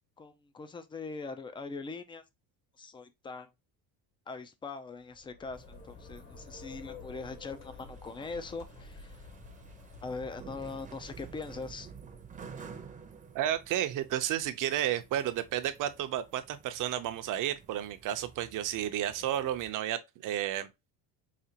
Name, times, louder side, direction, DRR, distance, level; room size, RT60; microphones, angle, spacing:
voice 1, 0.2-2.2 2.8-3.5 4.3-9.2 10.0-11.9, left 4 dB, 15° left, 0.4 m, -41 dB
sound 1, 5.0-11.1, left 4 dB, 35° left, 1.0 m, -50 dB
sound 2, 5.5-19.7, right 6 dB, 20° right, 0.7 m, -52 dB
voice 2, 13.3-20.7, right 11 dB, 55° right, 0.7 m, -32 dB
5.0 x 2.5 x 2.8 m
cardioid pair, 125°, 38 cm